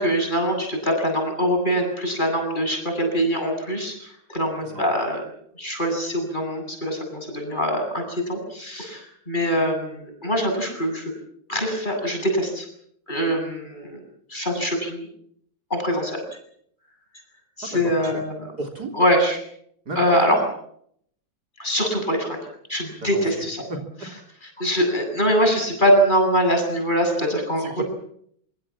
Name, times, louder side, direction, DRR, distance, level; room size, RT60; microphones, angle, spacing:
voice 1, 0.0-5.2 5.6-11.1 11.5-12.6 13.1-14.0 14.3-15.0 15.7-16.2 17.6-18.2 18.9-19.4 19.9-20.4 21.6-22.4 22.7-23.6 24.6-27.8, equal, 25° left, 3 dB, 8.1 m, -23 dB
voice 2, 18.6-19.0 19.9-20.4 23.0-23.4 23.7-23.8 27.6-27.8, right 2 dB, 55° right, 3 dB, 4.1 m, -33 dB
25.0 x 24.5 x 7.3 m, 0.69 s
omnidirectional pair, 2.1 m